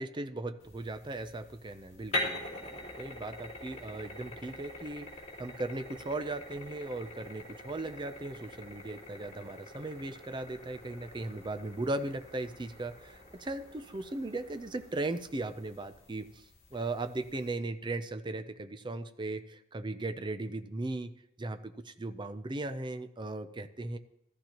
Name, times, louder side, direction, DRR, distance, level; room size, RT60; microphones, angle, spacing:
voice 1, 0.0-2.4 3.0-16.3 16.7-21.1 21.4-24.0, right 2 dB, 25° right, 10 dB, 0.6 m, -37 dB
sound 1, 0.6-17.5, left 1 dB, 35° left, 3.6 m, -44 dB
14.5 x 13.0 x 3.0 m, 0.80 s
head